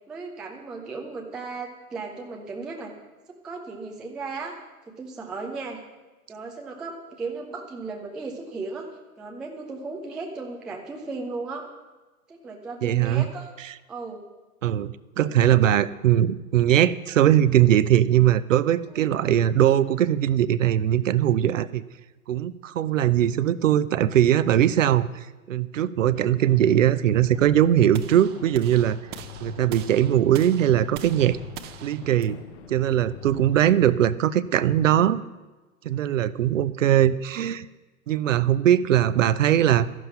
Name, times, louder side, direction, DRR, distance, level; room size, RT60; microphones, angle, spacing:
voice 1, 0.1-2.9 3.4-4.6 5.0-5.8 6.3-8.9 9.2-11.7 12.3-13.5 13.9-14.2 18.9-19.2, right 3 dB, ahead, 1 dB, 0.3 m, -36 dB
voice 2, 12.8-13.3 13.6-13.7 14.6-21.8 22.3-25.1 25.5-29.0 29.4-31.4 31.8-32.4 32.7-35.2 35.8-37.7 38.1-39.9, right 11 dB, 60° right, 15 dB, 0.7 m, -20 dB
sound 1, 26.1-34.0, left 9 dB, 55° left, 0.9 m, -44 dB
sound 2, 27.9-34.0, right 10 dB, 25° right, 0.7 m, -43 dB
13.5 x 11.0 x 5.7 m, 1.2 s
figure-of-eight pair, 100°, 43 cm